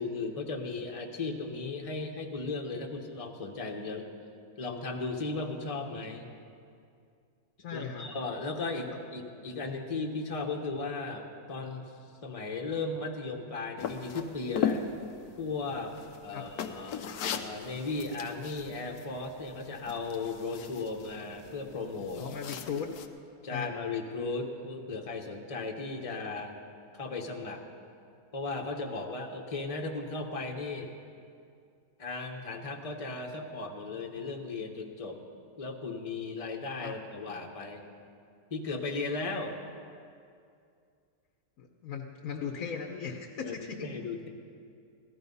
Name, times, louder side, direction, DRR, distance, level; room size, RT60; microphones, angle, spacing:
voice 1, 0.0-4.1 4.6-6.2 7.7-11.8 12.2-14.8 15.4-16.0 16.2-17.0 17.3-22.3 23.4-26.5 26.9-27.6 28.3-30.9 32.0-35.2 35.6-37.8 38.5-39.6 43.4-43.5 43.8-44.3, left 3 dB, 25° left, 2 dB, 1.2 m, -36 dB
voice 2, 7.6-8.1 8.9-9.0 16.3-16.4 22.2-22.9 23.5-23.7 36.8-36.9 41.6-43.9, left 6 dB, 70° left, 1 dB, 1.3 m, -37 dB
sound 1, 13.8-23.1, left 7 dB, 85° left, 1.3 m, -38 dB
16.5 x 13.0 x 5.4 m, 2.4 s
omnidirectional pair, 1.6 m